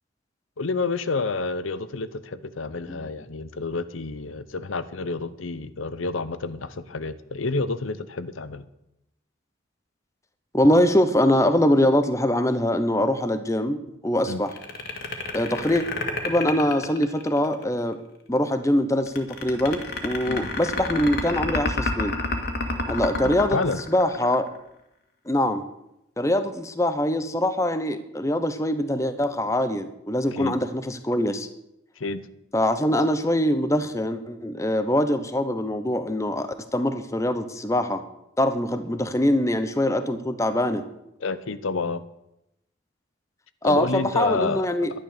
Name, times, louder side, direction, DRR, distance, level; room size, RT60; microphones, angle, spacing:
voice 1, 0.6-8.6 14.3-14.4 20.3-20.5 23.2-23.8 30.3-30.5 32.0-32.2 41.2-42.0 43.6-44.7, left 3 dB, 85° left, 13 dB, 0.8 m, -29 dB
voice 2, 10.5-13.8 14.0-14.5 15.3-15.8 16.2-18.0 18.3-22.1 22.9-23.6 23.9-24.5 25.3-25.6 26.2-31.5 32.5-38.0 38.4-40.8 43.6-44.9, left 1 dB, 15° left, 10 dB, 0.8 m, -23 dB
sound 1, 14.5-17.6 19.1-24.6, left 3 dB, 55° left, 1.9 m, -29 dB
11.5 x 10.5 x 6.7 m, 0.84 s
head